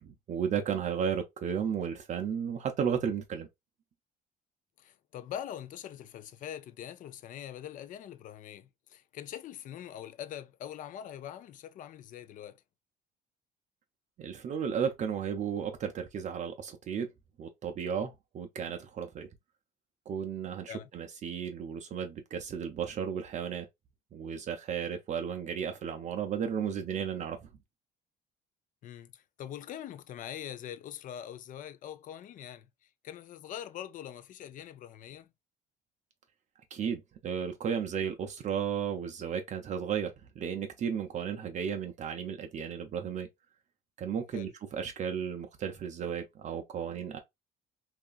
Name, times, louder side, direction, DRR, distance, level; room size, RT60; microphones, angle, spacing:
voice 1, 0.0-3.5 14.2-17.1 17.4-19.3 20.1-23.7 24.1-27.5 36.7-43.3 44.0-47.2, right 7 dB, 45° right, 0.5 m, -34 dB
voice 2, 4.8-12.6 20.7-20.9 28.8-32.7 33.0-35.3 44.3-44.5, left 10 dB, 50° left, 0.4 m, -43 dB
2.8 x 2.4 x 2.3 m
cardioid pair, 110°, 17 cm